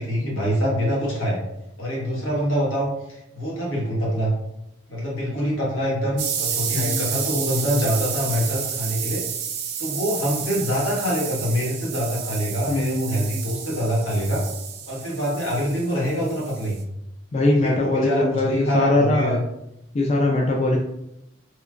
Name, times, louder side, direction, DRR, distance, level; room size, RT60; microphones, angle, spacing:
voice 1, 0.0-1.4 1.8-4.3 4.9-9.2 9.8-14.5 14.9-16.8 17.6-19.4, equal, 85° left, -4 dB, 1.3 m, -25 dB
sound 1, 6.2-16.8, right 8 dB, 55° right, 0.5 m, -31 dB
voice 2, 6.7-7.1 12.7-13.3 17.3-19.4 19.9-20.8, left 2 dB, 35° left, 0 dB, 0.3 m, -21 dB
3.1 x 3.0 x 2.4 m, 0.84 s
head